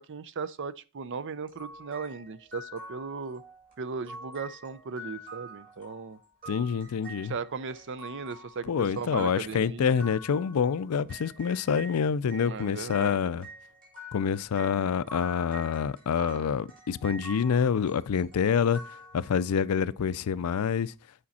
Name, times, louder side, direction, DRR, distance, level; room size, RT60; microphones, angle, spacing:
voice 1, 0.0-3.4 3.8-6.2 7.2-10.1 12.4-13.5, right 5 dB, 55° right, 0.5 m, -37 dB
sound 1, 1.5-12.0 12.3-19.7, right 1 dB, 40° right, 4.5 m, -47 dB
voice 2, 6.5-7.3 8.7-13.5 14.1-18.8 19.1-20.9, left 7 dB, 80° left, 0.4 m, -27 dB
8.6 x 5.1 x 4.1 m
head